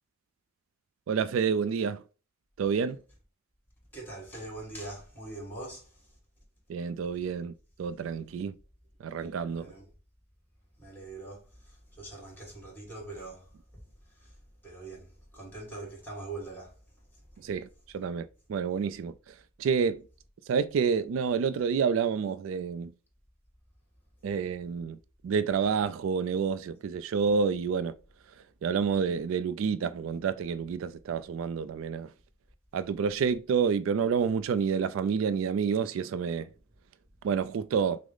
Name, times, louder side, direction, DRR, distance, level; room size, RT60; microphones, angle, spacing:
voice 1, 1.1-2.0 2.6-3.0 6.7-7.5 7.8-8.5 9.0-9.6 17.4-17.7 17.9-19.1 19.6-20.0 20.5-22.9 24.2-25.0 25.2-27.9 28.6-32.1 32.7-36.5 37.2-38.0, right 6 dB, 70° right, 0.3 m, -28 dB
voice 2, 3.9-6.2 9.5-9.9 10.8-14.4 14.6-16.8 17.3-17.5, right 2 dB, 10° left, 2.2 m, -43 dB
6.1 x 2.0 x 3.8 m
head